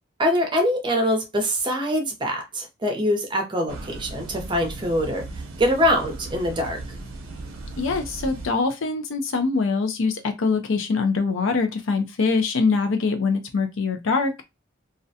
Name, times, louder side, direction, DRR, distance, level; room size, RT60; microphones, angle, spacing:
voice 1, 0.2-5.3 5.6-6.8, equal, 25° right, 0.6 m, -23 dB
sound 1, 3.7-8.6, right 2 dB, 70° right, 0.6 m, -37 dB
voice 2, 7.8-14.4, left 4 dB, 65° left, 0.5 m, -23 dB
2.4 x 2.1 x 2.7 m
head